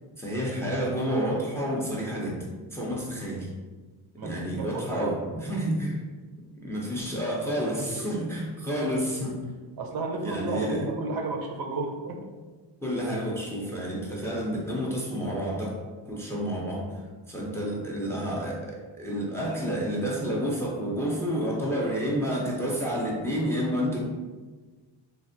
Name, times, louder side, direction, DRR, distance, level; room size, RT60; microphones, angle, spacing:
voice 1, 0.2-3.5 4.2-5.9 6.5-9.4 10.2-10.9 12.8-15.7 16.0-24.0, equal, 5° left, -3 dB, 0.5 m, -30 dB
voice 2, 4.2-5.1 9.8-12.2, right 3 dB, 55° right, 2 dB, 0.5 m, -32 dB
3.2 x 2.1 x 2.5 m, 1.3 s
cardioid pair, 100°, 45 cm